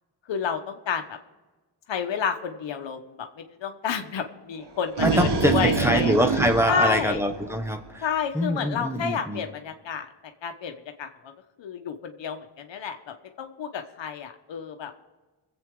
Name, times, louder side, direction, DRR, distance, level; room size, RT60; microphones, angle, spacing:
voice 1, 0.3-1.2 1.9-3.3 3.6-6.1 6.7-7.2 8.0-10.1 10.4-10.7 11.0-11.1 11.6-14.9, left 7 dB, 80° left, 6 dB, 1.1 m, -30 dB
sound 1, 4.6-7.9, right 5 dB, 65° right, 1.4 m, -26 dB
voice 2, 5.0-8.1 8.3-9.4, equal, 5° right, 6 dB, 1.3 m, -24 dB
24.0 x 8.2 x 3.7 m, 1.2 s
cardioid pair, 90°, 44 cm